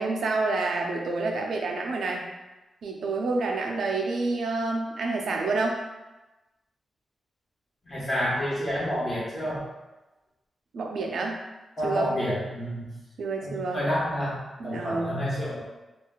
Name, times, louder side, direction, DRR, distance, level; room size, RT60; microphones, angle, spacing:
voice 1, 0.0-2.3 2.8-5.8 10.7-11.4 11.8-12.1 13.2-13.8 14.6-15.2, right 3 dB, 75° right, 1 dB, 0.4 m, -28 dB
voice 2, 7.8-9.7 11.8-12.9 13.4-15.6, equal, 30° left, -8 dB, 1.1 m, -29 dB
3.9 x 2.3 x 2.3 m, 1.1 s
wide cardioid pair, 140°, 0 cm